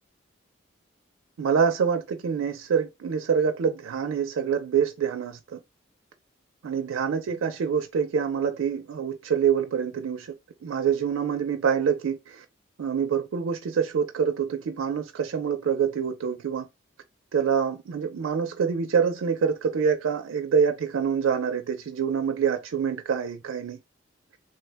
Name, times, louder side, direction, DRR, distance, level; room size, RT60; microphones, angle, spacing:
voice 1, 1.4-5.6 6.6-10.3 10.6-12.4 12.8-16.7 17.3-23.8, right 7 dB, 85° right, 0.4 m, -26 dB
3.1 x 2.1 x 3.2 m
head